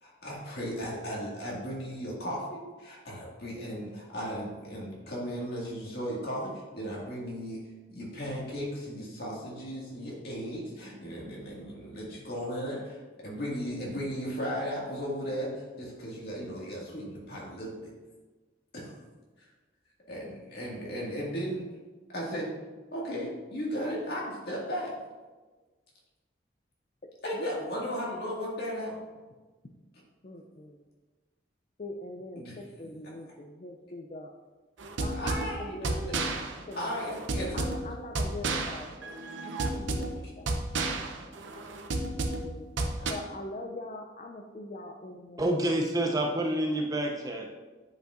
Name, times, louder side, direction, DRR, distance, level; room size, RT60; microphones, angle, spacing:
voice 1, 0.0-7.6 7.9-13.0 13.2-17.9 18.7-18.9 19.4-19.5 20.1-21.7 22.1-22.5 22.9-24.9 27.2-29.0 32.4-32.6 35.1-36.1 36.8-37.8 43.0-43.1, equal, 55° left, -4 dB, 2.0 m, -36 dB
voice 2, 27.3-27.9 30.2-30.8 31.8-34.3 35.0-36.3 36.7-36.9 37.5-40.5 42.0-42.7 43.1-45.5 46.1-46.4, left 2 dB, 40° left, 2 dB, 0.4 m, -43 dB
sound 1, 34.8-43.1, right 2 dB, 85° right, 0.7 m, -32 dB
voice 3, 45.4-47.5, right 1 dB, 20° right, 0 dB, 0.5 m, -28 dB
9.1 x 5.2 x 2.5 m, 1.3 s
head